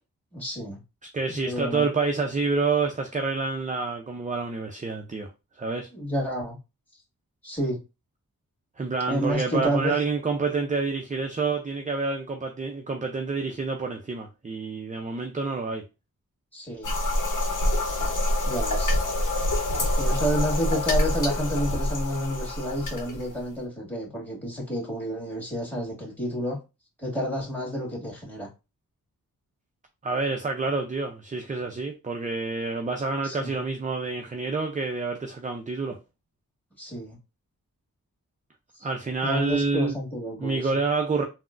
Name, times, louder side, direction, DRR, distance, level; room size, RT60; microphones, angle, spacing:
voice 1, 0.3-0.8 1.3-1.8 5.9-6.6 7.4-7.8 9.1-9.9 16.5-16.9 18.0-18.1 18.5-19.0 20.0-26.6 27.0-28.5 33.2-33.6 36.8-37.2 39.2-40.7, equal, 5° left, 1.8 m, -30 dB
voice 2, 1.1-5.3 5.6-5.9 8.8-15.8 30.0-36.0 38.8-40.0 40.4-41.2, right 4 dB, 20° right, 0.5 m, -28 dB
sound 1, 16.8-23.4, left 1 dB, 60° left, 1.0 m, -26 dB
3.5 x 2.1 x 2.4 m
cardioid pair, 45°, 35 cm